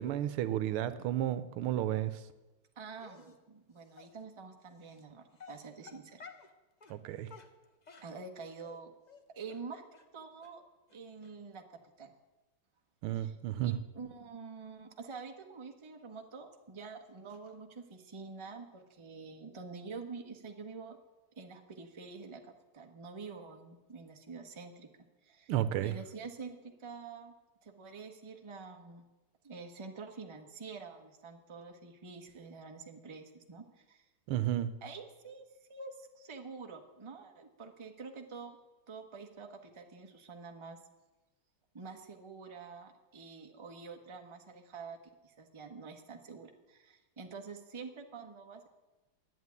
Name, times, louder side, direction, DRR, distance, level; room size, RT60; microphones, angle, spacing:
voice 1, 0.0-2.1 6.9-7.3 13.0-13.8 25.5-25.9 34.3-34.7, right 12 dB, 90° right, 13 dB, 1.6 m, -32 dB
voice 2, 2.8-6.3 8.0-8.9 9.3-9.8 10.1-10.6 10.9-12.1 13.1-21.0 21.4-24.9 25.2-27.3 27.6-29.0 29.4-34.1 34.8-38.6 38.9-40.8 41.7-45.0 45.2-48.7, right 4 dB, 20° right, 3 dB, 0.8 m, -47 dB
Dog, 3.0-3.4 4.0-4.1 4.9-5.0 5.4-6.5 6.8-7.0 7.3-8.8 9.1-9.2 9.5-9.6 9.9-10.0 10.4-10.5 10.9-11.0 11.2-11.3, left 5 dB, 70° left, 0.4 m, -53 dB
11.0 x 8.8 x 9.6 m, 1.1 s
omnidirectional pair, 2.4 m